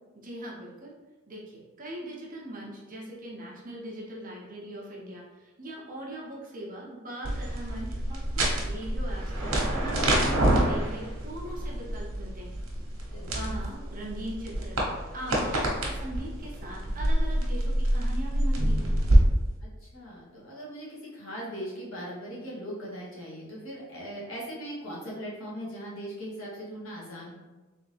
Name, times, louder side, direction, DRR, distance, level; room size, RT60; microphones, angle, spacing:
voice 1, 0.1-0.9 1.3-12.6 13.3-14.8 15.1-18.9, right 1 dB, 40° right, -4 dB, 1.0 m, -40 dB
sound 1, 7.2-19.2, right 1 dB, 80° right, 1.1 m, -27 dB
voice 2, 13.1-13.6 19.6-27.3, equal, 75° left, -6 dB, 1.4 m, -39 dB
3.5 x 3.5 x 3.4 m, 1.2 s
head